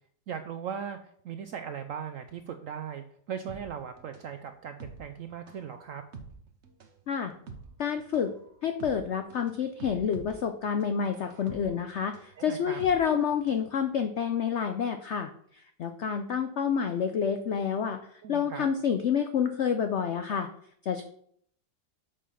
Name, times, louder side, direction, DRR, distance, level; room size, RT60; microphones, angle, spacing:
voice 1, 0.3-6.0 12.4-12.8 18.2-18.7, right 7 dB, 75° right, 8 dB, 0.7 m, -38 dB
sound 1, 3.5-13.7 14.0-14.1, right 4 dB, 50° right, 1.0 m, -47 dB
voice 2, 7.8-8.3 8.6-15.3 15.8-18.0 18.3-20.5 20.8-21.0, left 7 dB, 80° left, 8 dB, 0.6 m, -28 dB
6.9 x 5.0 x 5.6 m, 0.65 s
omnidirectional pair, 1.9 m